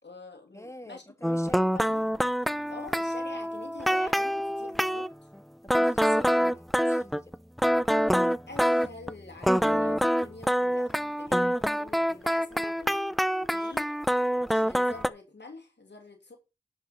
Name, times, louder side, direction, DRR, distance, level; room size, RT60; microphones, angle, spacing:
voice 1, 0.0-2.1 2.5-5.1 8.5-13.9 14.5-16.4, left 3 dB, 85° left, 2.6 m, -47 dB
voice 2, 0.5-1.7 5.6-7.3, equal, 15° left, 1.6 m, -46 dB
sound 1, 1.2-5.1 5.7-9.1 9.4-15.1, equal, ahead, 0.5 m, -26 dB
10.5 x 4.7 x 5.6 m
wide cardioid pair, 40°, 18 cm